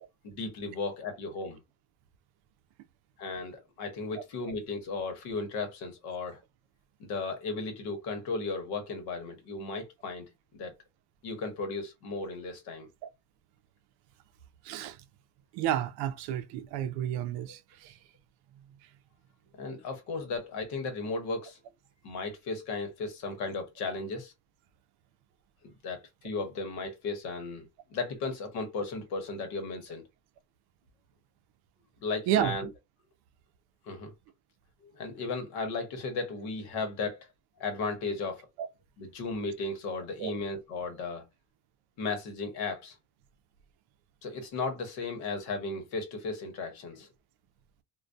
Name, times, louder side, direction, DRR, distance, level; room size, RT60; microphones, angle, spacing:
voice 1, 0.2-1.6 3.2-6.4 7.0-10.3 10.5-10.7 11.2-12.9 19.6-21.6 22.0-24.3 25.6-30.0 32.0-32.7 33.9-34.1 34.8-37.3 37.6-38.5 39.0-41.3 42.0-43.0 44.2-47.1, left 3 dB, 65° left, 1.0 m, -35 dB
voice 2, 14.6-15.0 15.5-18.0 32.3-32.6 38.6-38.7 40.2-40.4, right 11 dB, 70° right, 0.5 m, -31 dB
2.2 x 2.2 x 2.5 m
cardioid pair, 175°, 41 cm